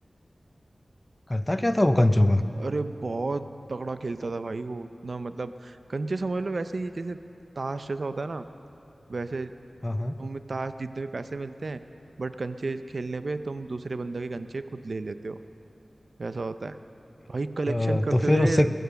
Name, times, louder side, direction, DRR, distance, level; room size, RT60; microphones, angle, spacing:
voice 1, 1.3-2.4 9.8-10.1 17.7-18.7, left 1 dB, 20° left, 10 dB, 0.6 m, -22 dB
voice 2, 2.6-7.2 7.6-8.4 9.1-9.5 10.2-11.8 12.2-15.4 16.2-16.8 17.3-18.7, right 3 dB, 60° right, 11 dB, 0.5 m, -32 dB
21.0 x 9.2 x 6.9 m, 2.8 s
wide cardioid pair, 80°, 0 cm